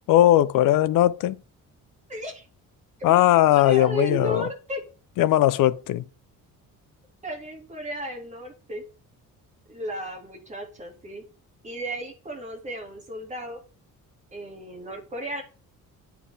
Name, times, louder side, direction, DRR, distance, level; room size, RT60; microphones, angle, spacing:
voice 1, 0.1-1.4 3.0-4.5 5.2-6.0, left 13 dB, 70° left, 0.6 m, -19 dB
voice 2, 2.1-2.4 3.0-3.2 3.5-4.8 7.2-8.8 9.7-11.2 11.6-13.6 14.3-15.4, right 1 dB, 20° right, 2.2 m, -34 dB
10.0 x 4.6 x 3.4 m
cardioid pair, 175°, 34 cm